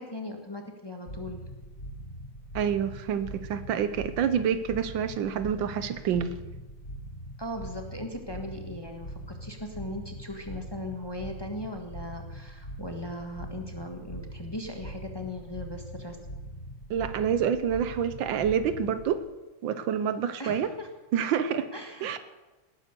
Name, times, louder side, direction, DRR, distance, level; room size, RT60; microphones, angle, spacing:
voice 1, 0.0-1.4 7.4-16.2 20.4-20.9 21.7-22.2, left 1 dB, 15° left, 3 dB, 1.4 m, -38 dB
sound 1, 1.1-19.1, equal, 35° left, 3.5 m, -42 dB
voice 2, 2.5-6.4 16.9-19.2 19.6-20.7 21.1-21.7 22.0-22.2, right 8 dB, 75° right, 12 dB, 1.4 m, -27 dB
18.5 x 9.6 x 6.8 m, 1.1 s
omnidirectional pair, 2.2 m